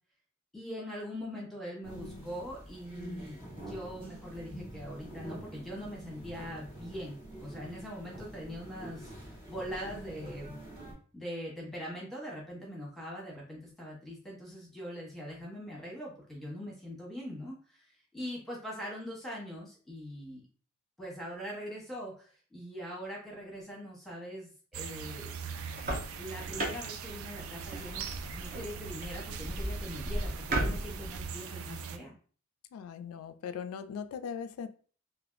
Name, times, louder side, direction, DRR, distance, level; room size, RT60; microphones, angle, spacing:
voice 1, 0.5-10.6 11.1-20.4 21.0-25.3 26.2-32.1, equal, ahead, -4 dB, 1.1 m, -42 dB
sound 1, 1.8-10.9, right 1 dB, 25° right, 1.1 m, -46 dB
sound 2, 24.7-32.0, right 7 dB, 75° right, 0.4 m, -41 dB
sound 3, 25.5-31.3, right 1 dB, 40° right, 0.8 m, -37 dB
voice 2, 32.7-34.7, left 7 dB, 80° left, 10 dB, 0.3 m, -39 dB
3.4 x 2.5 x 2.5 m, 0.42 s
head